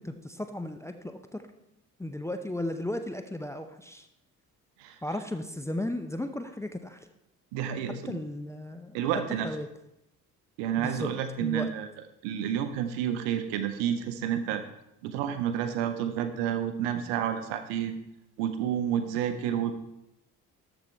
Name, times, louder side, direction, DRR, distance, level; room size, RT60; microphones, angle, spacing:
voice 1, 0.0-1.4 2.0-4.1 5.0-7.0 8.1-9.0 9.4-9.7 10.8-11.1 11.4-11.7, left 1 dB, 5° left, 7 dB, 0.6 m, -35 dB
voice 2, 7.5-8.2 8.9-9.5 10.6-11.9 12.2-14.6 15.0-18.0 18.4-19.7, right 9 dB, 60° right, 10 dB, 0.9 m, -30 dB
13.0 x 4.5 x 4.4 m, 0.85 s
figure-of-eight pair, 45°, 47 cm